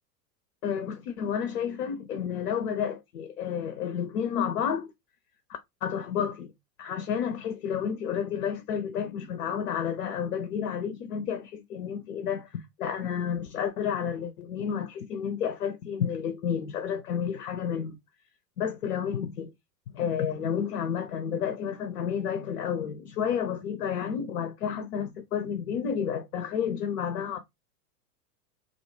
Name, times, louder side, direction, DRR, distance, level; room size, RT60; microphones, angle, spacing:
voice 1, 0.6-4.9 5.8-6.5 6.8-18.0 18.6-19.5 19.9-27.4, left 8 dB, 60° left, 0.6 m, -31 dB
2.5 x 2.2 x 2.6 m
figure-of-eight pair, 95°, 48 cm